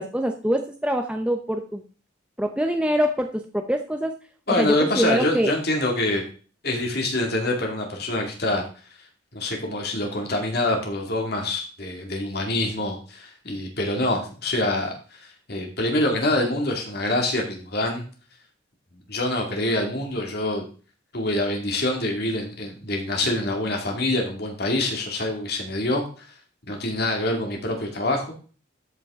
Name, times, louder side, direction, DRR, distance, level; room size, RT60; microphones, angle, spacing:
voice 1, 0.0-1.8 2.4-4.1 4.6-5.5, equal, 5° right, 4 dB, 0.7 m, -24 dB
voice 2, 4.5-6.2 6.6-8.6 9.3-14.9 15.5-18.0 19.1-20.7 21.1-26.3 26.7-28.3, left 1 dB, 50° left, 1 dB, 2.2 m, -25 dB
12.5 x 5.9 x 3.6 m, 0.38 s
head